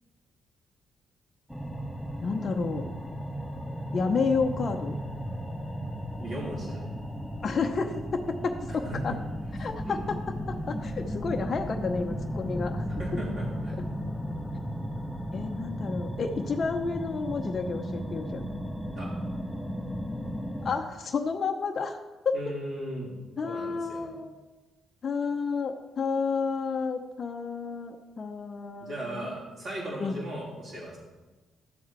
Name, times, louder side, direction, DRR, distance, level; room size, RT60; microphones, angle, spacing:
sound 1, 1.5-20.8, equal, ahead, 1.8 m, -35 dB
voice 1, 2.2-2.9 3.9-5.0 7.4-9.1 9.6-10.2 10.5-12.8 15.3-18.4 20.6-22.0 22.2-22.4 23.4-24.3 25.0-29.2 30.0-30.2, left 4 dB, 45° left, 3 dB, 0.8 m, -30 dB
voice 2, 6.2-6.9 8.7-9.2 9.8-10.1 13.0-13.8 18.9-19.1 22.3-23.1 23.4-24.1 28.8-31.0, right 1 dB, 55° right, -9 dB, 3.6 m, -37 dB
12.5 x 7.3 x 4.6 m, 1.2 s
hypercardioid pair, 45°, 0 cm